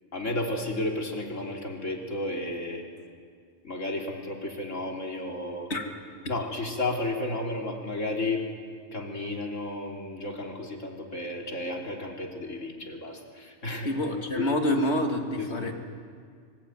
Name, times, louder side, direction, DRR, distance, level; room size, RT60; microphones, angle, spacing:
voice 1, 0.1-2.8 3.6-5.7 6.3-8.4 8.9-13.9 14.4-14.5 15.4-15.5, left 2 dB, 90° left, 0 dB, 3.8 m, -32 dB
voice 2, 13.8-15.7, left 1 dB, 60° left, 3 dB, 2.8 m, -27 dB
26.0 x 24.5 x 9.3 m, 2.1 s
omnidirectional pair, 1.3 m